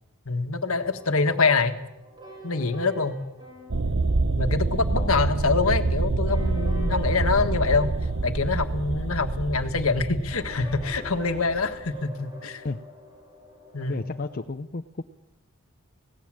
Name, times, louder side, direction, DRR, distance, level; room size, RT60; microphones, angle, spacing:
voice 1, 0.2-1.8 2.4-3.2 4.4-7.9 8.2-12.6 13.7-14.0, left 4 dB, 70° left, 7 dB, 1.6 m, -25 dB
sound 1, 0.6-14.4, left 1 dB, 20° right, 5.9 m, -45 dB
sound 2, 3.7-11.9, right 3 dB, 60° right, 0.9 m, -27 dB
voice 2, 4.9-5.3 12.6-12.8 13.9-15.0, left 3 dB, 40° left, 6 dB, 0.7 m, -32 dB
18.0 x 17.0 x 9.0 m, 0.87 s
head